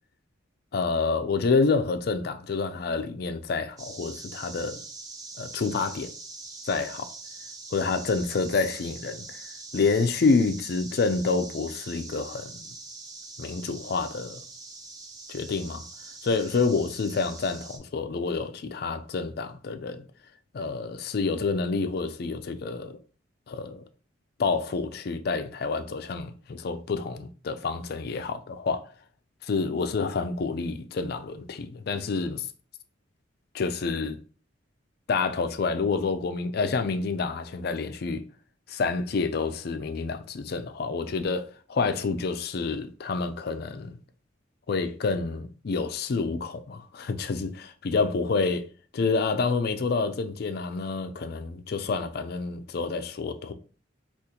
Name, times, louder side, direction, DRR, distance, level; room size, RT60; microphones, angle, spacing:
voice 1, 0.7-4.8 5.4-6.1 6.7-7.1 7.7-9.4 9.7-12.7 13.4-14.4 15.3-15.8 16.2-20.0 20.5-23.0 23.5-23.8 24.4-28.9 29.4-32.5 33.5-34.2 35.1-38.2 38.7-44.0 44.7-48.7 48.9-53.5, left 4 dB, 55° left, 0.4 m, -28 dB
sound 1, 3.8-17.8, right 3 dB, 20° right, 0.5 m, -43 dB
3.7 x 2.4 x 2.8 m
head